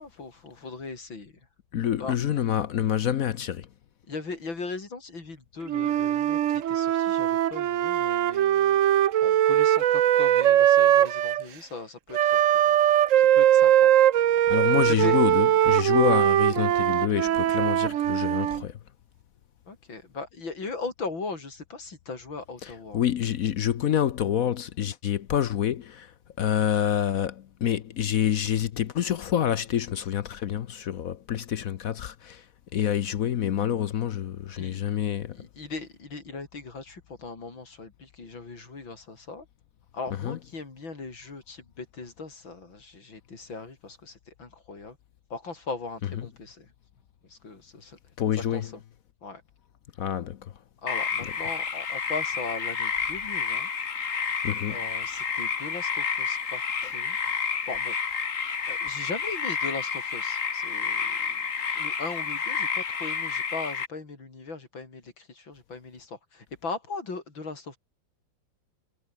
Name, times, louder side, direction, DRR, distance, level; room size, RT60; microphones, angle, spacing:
voice 1, 0.0-1.3 2.0-2.2 4.1-8.8 9.2-12.8 13.1-13.9 14.9-15.2 19.7-23.0 34.6-39.5 39.9-45.0 45.3-46.7 47.3-48.0 48.5-48.8 49.2-49.4 50.8-53.7 54.7-57.2 57.7-58.0 58.7-61.2 61.7-67.8, left 3 dB, 85° left, 5.2 m, -39 dB
voice 2, 1.7-3.7 14.5-18.8 22.6-26.1 26.4-32.4 32.7-35.4 40.2-40.4 48.2-48.7 50.0-50.4 54.4-54.8, left 10 dB, 60° left, 1.0 m, -27 dB
Wind instrument woodwind instrument, 5.7-11.4 12.1-18.6, right 11 dB, 65° right, 0.8 m, -21 dB
sound 1, 50.9-63.9, left 6 dB, 45° left, 1.9 m, -30 dB
omnidirectional pair, 2.1 m